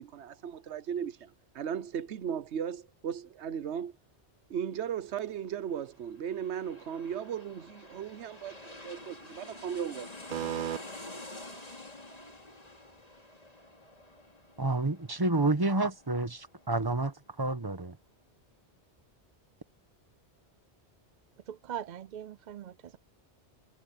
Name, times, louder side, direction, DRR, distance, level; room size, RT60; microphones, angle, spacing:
voice 1, 0.0-4.0 4.5-10.3, right 8 dB, 85° right, 1.1 m, -37 dB
sound 1, 5.9-17.3 17.6-17.7, left 2 dB, 35° left, 2.9 m, -49 dB
voice 2, 10.3-10.8 21.5-23.0, right 10 dB, 55° right, 0.5 m, -37 dB
voice 3, 14.6-18.0, right 2 dB, 20° right, 1.3 m, -29 dB
omnidirectional pair, 1.1 m